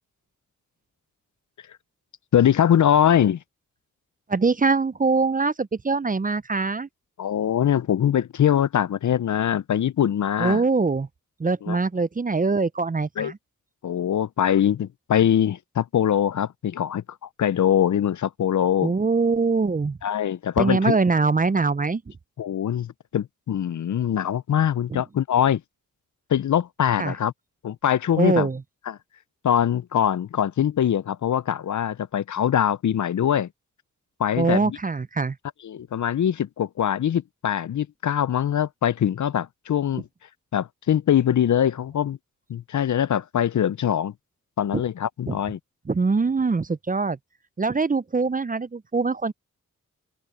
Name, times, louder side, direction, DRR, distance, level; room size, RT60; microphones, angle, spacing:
voice 1, 2.3-3.4 7.2-10.6 11.6-11.8 13.2-13.3 13.8-17.0 17.4-18.9 20.0-21.0 22.4-25.6 26.3-27.3 27.6-28.5 28.9-29.0 29.4-33.5 34.2-34.8 35.6-40.1 40.5-42.2 42.5-44.1 44.6-45.6, left 9 dB, 60° left, 0.6 m, -22 dB
voice 2, 4.3-6.9 10.4-11.1 11.4-13.4 18.8-20.0 20.6-22.0 24.9-25.0 27.0-27.1 28.2-28.6 34.4-35.4 44.7-44.8 45.3-45.4 45.9-47.2 47.6-49.3, right 4 dB, 25° right, 0.6 m, -23 dB
open air
cardioid pair, 40°, 33 cm